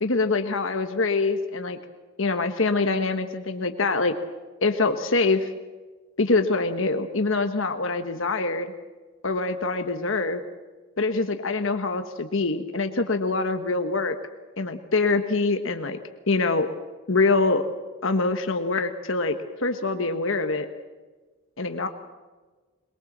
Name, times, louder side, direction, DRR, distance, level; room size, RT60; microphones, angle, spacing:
voice 1, 0.0-1.8 2.2-4.1 4.6-5.5 6.2-8.7 9.2-10.4 11.0-14.2 14.6-16.0 16.3-16.7 17.1-17.6 18.0-20.7 21.6-21.9, left 3 dB, 65° left, 7 dB, 1.3 m, -24 dB
22.5 x 22.0 x 7.3 m, 1.3 s
head